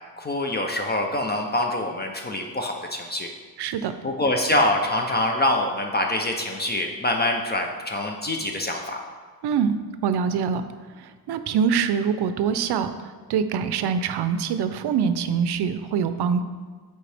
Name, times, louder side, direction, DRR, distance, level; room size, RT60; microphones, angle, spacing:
voice 1, 0.2-3.3 4.0-9.0, left 1 dB, 25° left, 2 dB, 0.4 m, -25 dB
voice 2, 3.6-3.9 9.4-10.7 11.0-16.4, right 7 dB, 85° right, 10 dB, 0.5 m, -24 dB
7.7 x 4.6 x 3.3 m, 1.5 s
wide cardioid pair, 165°, 39 cm